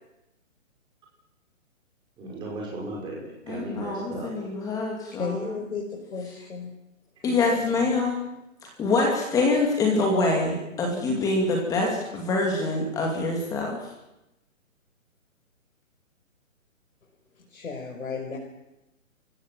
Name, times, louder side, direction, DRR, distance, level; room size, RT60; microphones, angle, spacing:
voice 1, 2.2-4.3, right 2 dB, 10° right, -2 dB, 5.6 m, -36 dB
voice 2, 3.5-5.3 7.2-8.3 8.8-13.8, left 3 dB, 10° left, 1 dB, 2.5 m, -25 dB
voice 3, 5.2-6.7 7.3-8.0 17.5-18.4, left 5 dB, 70° left, -1 dB, 5.6 m, -34 dB
27.5 x 16.5 x 7.6 m, 0.92 s
hypercardioid pair, 165°, 41 cm